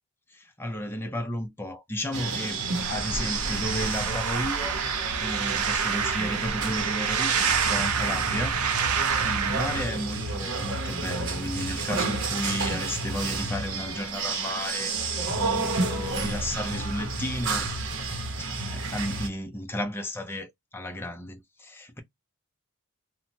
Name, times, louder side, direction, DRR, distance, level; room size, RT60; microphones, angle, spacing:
voice 1, 0.3-2.6 2.9-4.8 5.2-8.6 9.2-17.7 18.4-22.0, left 1 dB, 10° left, 0.5 m, -33 dB
sound 1, 2.1-19.3, right 3 dB, 60° right, 0.8 m, -31 dB
sound 2, 2.8-9.8, right 6 dB, 90° right, 0.6 m, -28 dB
2.8 x 2.1 x 2.8 m
head